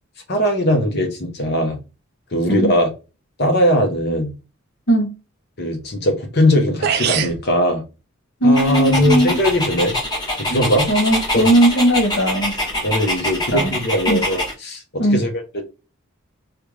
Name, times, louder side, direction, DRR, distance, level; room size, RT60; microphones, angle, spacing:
voice 1, 0.3-1.8 2.3-2.9 3.4-4.3 5.6-7.8 8.4-9.9 10.4-10.9 11.3-11.5 12.8-15.3 15.5-15.6, equal, 50° left, 0.9 m, -19 dB
sound 1, 6.5-6.6 6.8-7.4, right 8 dB, 50° right, 0.3 m, -21 dB
voice 2, 8.4-9.4 10.5-10.6 10.9-12.5 13.5-13.7 14.1-14.2 15.0-15.2, right 1 dB, 65° left, 1.6 m, -17 dB
Dog, 8.5-14.5, left 1 dB, 20° left, 1.1 m, -24 dB
3.4 x 2.3 x 3.1 m
head